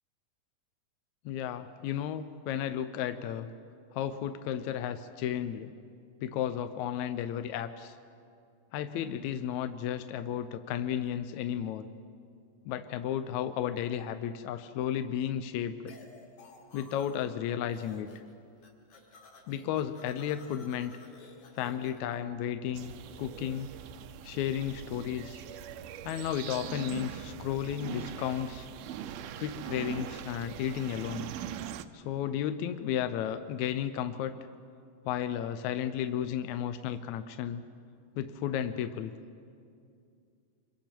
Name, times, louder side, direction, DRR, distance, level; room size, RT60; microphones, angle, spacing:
voice 1, 1.3-3.5 3.9-5.7 6.2-7.9 8.7-11.9 12.7-15.9 16.7-18.1 19.5-21.0 21.6-23.7 24.2-25.4 26.0-28.7 29.4-31.3 31.9-34.3 35.1-37.6 38.2-39.1, left 10 dB, 75° left, 9 dB, 1.8 m, -33 dB
sound 1, 15.9-17.4 17.7-18.3 18.6-22.1, left 3 dB, 60° left, 3.6 m, -54 dB
sound 2, 22.7-31.9, right 10 dB, 80° right, 2.2 m, -42 dB
26.5 x 23.5 x 4.5 m, 2.4 s
omnidirectional pair, 3.8 m